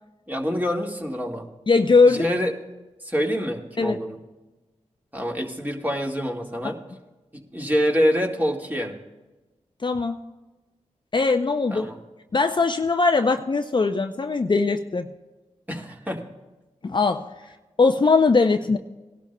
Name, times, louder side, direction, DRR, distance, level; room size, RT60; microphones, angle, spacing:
voice 1, 0.3-1.4 2.1-2.5 3.1-4.2 5.1-6.8 7.3-9.0 11.7-12.0 15.7-16.2, equal, 15° right, 1 dB, 1.8 m, -26 dB
voice 2, 1.7-2.3 3.8-4.0 9.8-10.2 11.1-11.9 12.3-15.1 16.8-17.3 17.8-18.8, left 4 dB, 35° left, 7 dB, 0.5 m, -20 dB
18.5 x 12.0 x 2.2 m, 1.1 s
cardioid pair, 40°, 13 cm